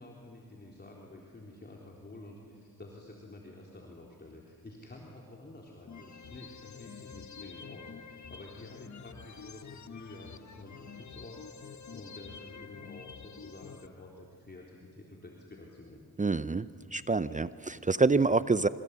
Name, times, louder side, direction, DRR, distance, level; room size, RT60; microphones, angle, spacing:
voice 1, 0.0-16.1, left 2 dB, 25° left, -2 dB, 3.9 m, -50 dB
sound 1, 5.9-13.9, left 6 dB, 50° left, 1.3 m, -48 dB
voice 2, 16.2-18.7, right 3 dB, 20° right, 14 dB, 0.7 m, -27 dB
27.0 x 26.0 x 8.4 m, 2.5 s
cardioid pair, 90°, 37 cm